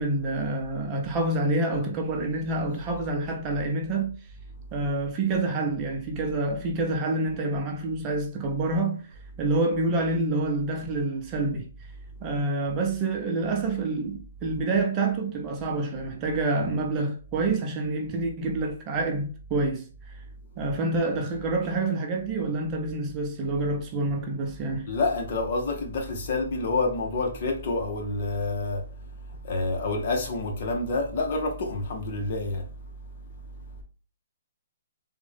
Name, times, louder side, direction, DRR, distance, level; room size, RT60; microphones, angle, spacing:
voice 1, 0.0-4.2 4.7-9.0 9.4-11.7 12.2-19.9 20.6-24.9, right 2 dB, 25° right, 0.7 m, -27 dB
voice 2, 24.9-28.8 29.4-32.6, left 3 dB, 50° left, 1.2 m, -28 dB
3.6 x 2.5 x 3.4 m
hypercardioid pair, 150°, 0 cm